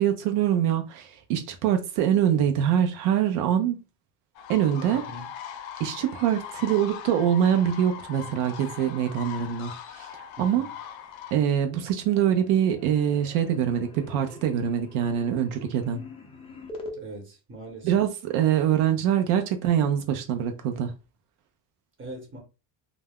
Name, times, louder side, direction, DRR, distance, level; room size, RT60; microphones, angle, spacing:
voice 1, 0.0-3.8 4.5-5.0 5.8-10.1 10.4-10.7 11.3-16.1 17.8-20.9, right 9 dB, 80° right, 0.6 m, -24 dB
sound 1, 4.3-11.3, left 9 dB, 70° left, 0.5 m, -40 dB
voice 2, 4.9-5.3 10.5-10.7 16.9-17.9 22.0-22.4, right 2 dB, 25° right, 1.0 m, -41 dB
sound 2, 11.0-11.5 11.8-17.0, left 2 dB, 15° left, 0.3 m, -45 dB
2.3 x 2.0 x 3.4 m
cardioid pair, 135°, 49 cm